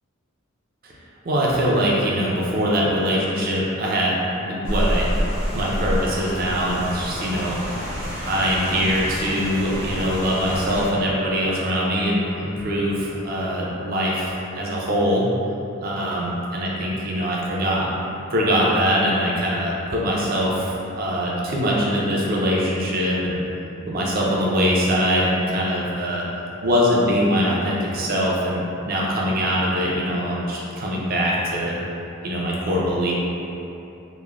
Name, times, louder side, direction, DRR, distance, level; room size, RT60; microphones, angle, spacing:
voice 1, 1.2-5.1 5.5-7.8 8.3-15.3 15.8-17.9 18.3-23.4 23.8-26.2 26.6-31.7 32.2-33.1, equal, 45° right, -4 dB, 0.4 m, -22 dB
Rain, 4.6-10.9, equal, 65° right, 0.8 m, -28 dB
3.0 x 2.0 x 2.3 m, 2.9 s
head